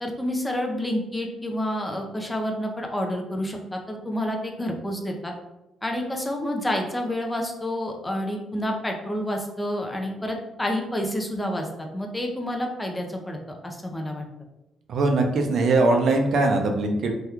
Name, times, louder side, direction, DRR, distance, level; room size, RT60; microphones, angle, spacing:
voice 1, 0.0-5.3 5.8-11.7 11.9-13.4 13.6-14.3, left 1 dB, 15° left, 2 dB, 0.5 m, -29 dB
voice 2, 14.9-17.1, right 2 dB, 65° right, 4 dB, 0.5 m, -21 dB
2.9 x 2.3 x 3.4 m, 0.96 s
cardioid pair, 90°, 0 cm